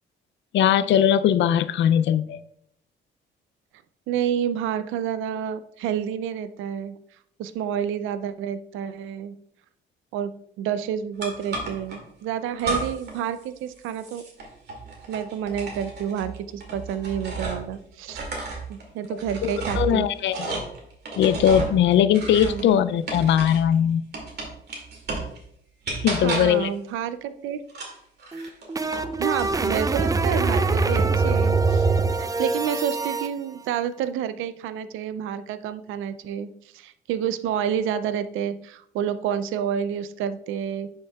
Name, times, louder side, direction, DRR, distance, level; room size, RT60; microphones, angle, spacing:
voice 1, 0.5-2.4 19.4-20.6 21.2-24.1 26.0-26.7, left 9 dB, 70° left, 14 dB, 0.4 m, -20 dB
voice 2, 4.1-7.0 7.4-9.4 10.1-14.2 15.1-18.2 18.7-20.1 22.4-22.8 26.2-27.6 29.2-31.9 32.2-40.9, right 9 dB, 90° right, 13 dB, 0.5 m, -29 dB
sound 1, 11.2-12.0 12.6-13.2 13.5-17.7 18.1-23.7 24.1-25.4 25.8-26.7 27.7-29.1 29.4-30.0, right 3 dB, 55° right, 2.2 m, -33 dB
sound 2, 28.3-33.3, right 3 dB, 20° right, 0.4 m, -23 dB
10.0 x 5.5 x 2.3 m, 0.71 s
cardioid pair, 90°, 20 cm